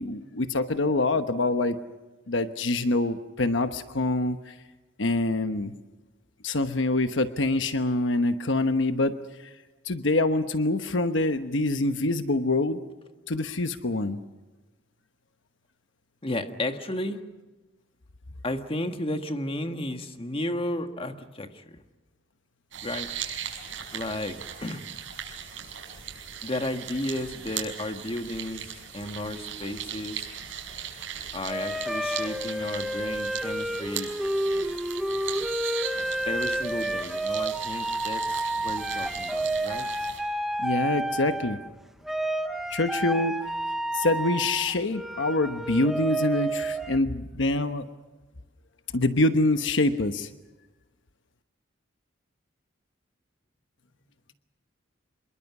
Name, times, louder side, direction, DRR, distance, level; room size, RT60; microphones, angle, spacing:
voice 1, 0.0-1.8 2.3-4.5 5.0-5.7 6.4-9.1 9.8-12.8 13.3-14.2 40.6-41.6 42.7-43.3 43.9-47.9 48.9-50.3, left 2 dB, 70° left, 9 dB, 1.1 m, -25 dB
voice 2, 16.2-17.2 18.4-21.8 22.8-23.1 23.9-24.8 26.4-28.7 28.9-30.3 31.3-34.1 36.3-39.9, left 1 dB, 30° left, 7 dB, 1.6 m, -33 dB
sound 1, 22.7-40.2, right 9 dB, 85° right, 5.9 m, -38 dB
sound 2, 29.0-30.2 31.5-41.7 42.0-47.0, right 1 dB, ahead, 0.8 m, -30 dB
26.5 x 22.5 x 6.1 m, 1.2 s
head